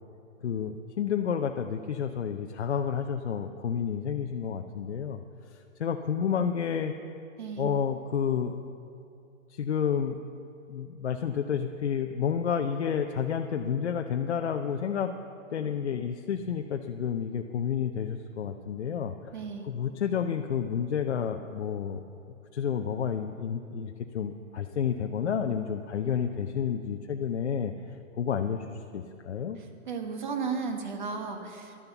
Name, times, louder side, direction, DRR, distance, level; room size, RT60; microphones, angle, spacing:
voice 1, 0.4-5.2 5.8-6.9 7.6-8.6 9.5-10.2 10.7-15.1 15.5-19.3 19.6-22.0 22.5-29.6, left 7 dB, 55° left, 4 dB, 0.6 m, -30 dB
voice 2, 7.4-7.8 19.3-19.7 29.6-31.8, right 5 dB, 35° right, 5 dB, 1.2 m, -35 dB
11.5 x 11.0 x 7.0 m, 2.6 s
hypercardioid pair, 180°, 40 cm